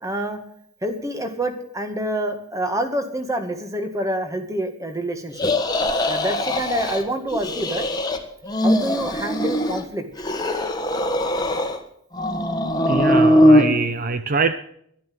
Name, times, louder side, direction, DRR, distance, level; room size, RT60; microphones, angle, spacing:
voice 1, 0.0-0.4 0.8-5.5 6.1-7.8 8.6-10.1, right 1 dB, 15° right, 7 dB, 1.8 m, -27 dB
sound 1, 5.4-7.0 7.3-8.2 8.4-9.8 10.2-11.8 12.1-13.7, left 1 dB, 20° left, 1.5 m, -20 dB
voice 2, 12.9-14.5, right 4 dB, 45° right, 10 dB, 0.6 m, -23 dB
11.5 x 11.0 x 7.7 m, 0.69 s
head